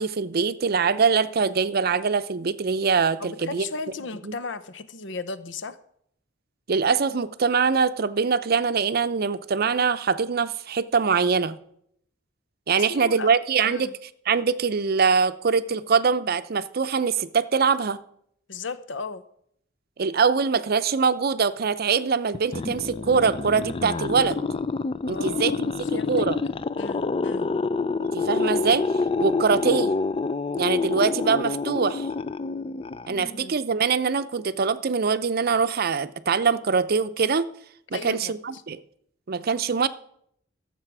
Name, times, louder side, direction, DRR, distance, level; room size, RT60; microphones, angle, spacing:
voice 1, 0.0-3.7 4.2-4.3 6.7-11.6 12.7-13.9 14.3-18.0 20.0-24.4 25.1-26.4 28.0-28.9 29.2-29.9 30.6-32.1 33.1-37.5 37.9-38.8 39.3-39.9, right 5 dB, 55° right, 13 dB, 0.6 m, -23 dB
voice 2, 3.2-5.8 12.8-13.3 13.7-13.9 18.5-19.2 25.0-26.2 26.8-27.5 33.1-33.6 37.9-38.6, left 4 dB, 70° left, 14 dB, 0.8 m, -36 dB
sound 1, 22.3-33.5, left 4 dB, 30° left, 0.4 m, -27 dB
13.0 x 7.5 x 6.0 m, 0.70 s
head